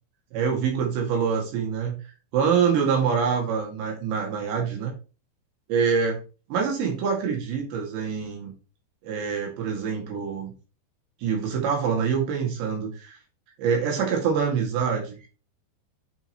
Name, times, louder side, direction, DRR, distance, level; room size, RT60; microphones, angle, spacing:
voice 1, 0.3-2.0 2.3-4.9 5.7-6.2 6.5-8.5 9.0-10.5 11.2-13.2 13.6-15.2, right 6 dB, 80° right, 0 dB, 4.5 m, -25 dB
9.4 x 5.4 x 3.1 m, 0.34 s
omnidirectional pair, 5.0 m